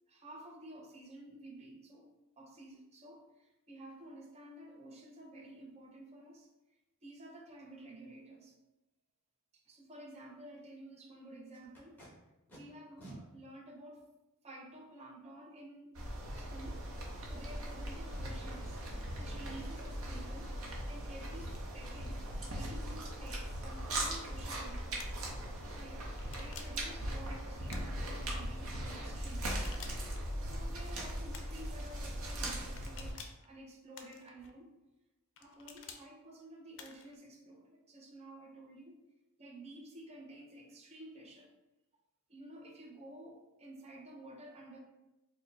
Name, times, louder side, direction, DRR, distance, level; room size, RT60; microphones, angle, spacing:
voice 1, 0.1-2.1 2.4-6.5 7.0-8.6 9.7-12.1 12.5-14.0 14.4-16.0 16.3-16.9 17.2-18.8 19.2-20.6 20.9-25.0 25.7-29.6 30.4-34.7 35.4-39.0 39.4-41.5 42.3-44.8, right 1 dB, 30° right, 0 dB, 0.5 m, -52 dB
Packing tape duct tape, 11.5-12.1 12.5-12.6 13.0-13.2 14.0-14.1 17.4-17.8 18.3-18.4 18.8-19.1 19.5-19.9 20.5-21.0 21.3-21.8 22.1-22.3 22.6-23.0 26.0-26.1 26.4-26.6 26.9-27.1 27.4-27.6 27.9-28.0, right 1 dB, 10° left, 1.1 m, -56 dB
sound 1, 15.9-33.1, right 1 dB, 70° right, 0.7 m, -39 dB
sound 2, 25.0-25.3 26.2-26.8 27.7-28.3 29.4-30.2 31.3-31.7 32.8-33.5 33.9-34.5 35.4-36.0 36.7-37.1, left 6 dB, 60° left, 0.4 m, -51 dB
4.7 x 2.2 x 3.2 m, 1.0 s
head